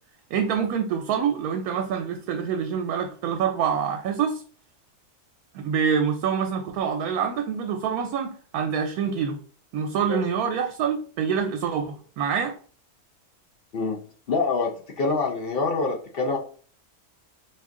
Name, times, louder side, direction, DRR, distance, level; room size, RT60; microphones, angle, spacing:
voice 1, 0.3-4.4 5.5-9.4 9.7-12.5, right 7 dB, 90° right, 1.1 m, -26 dB
voice 2, 14.3-16.4, left 3 dB, 60° left, 0.6 m, -25 dB
4.4 x 2.3 x 3.6 m
omnidirectional pair, 1.5 m